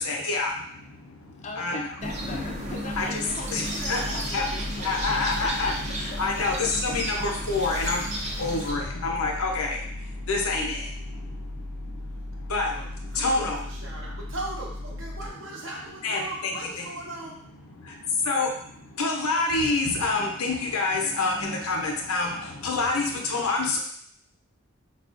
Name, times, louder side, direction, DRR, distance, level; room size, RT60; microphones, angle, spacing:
voice 1, 0.0-1.9 2.9-3.2 3.5-4.5 4.7-13.6 14.0-14.2 16.0-16.9 17.7-23.8, left 3 dB, 85° left, 0 dB, 0.7 m, -28 dB
voice 2, 1.4-5.0 5.4-7.0, left 2 dB, 30° left, 2 dB, 0.4 m, -41 dB
sound 1, 2.0-8.7, equal, 30° right, 0.5 m, -33 dB
sound 2, 3.8-15.3, left 1 dB, 85° right, 0.5 m, -37 dB
voice 3, 12.7-17.4, right 2 dB, 65° right, -3 dB, 0.8 m, -38 dB
4.3 x 2.4 x 2.4 m, 0.63 s
head